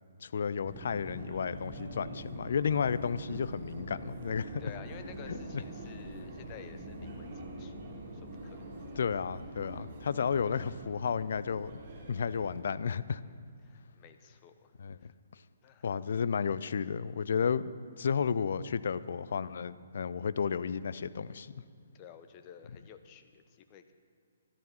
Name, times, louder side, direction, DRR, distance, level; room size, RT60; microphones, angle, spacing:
voice 1, 0.2-4.6 5.3-5.4 9.0-11.8 12.1-13.2 14.8-15.0 15.8-21.5, left 6 dB, 55° left, 15 dB, 0.5 m, -32 dB
Subway metro underground, 0.6-12.6, right 1 dB, 35° right, 3.2 m, -44 dB
voice 2, 4.6-7.7 8.4-8.7 13.2-13.3 13.6-14.7 15.0-15.1 15.6-15.9 21.9-23.9, left 8 dB, 25° left, 8 dB, 1.0 m, -52 dB
13.0 x 12.5 x 5.7 m, 2.3 s
figure-of-eight pair, 130°, 0 cm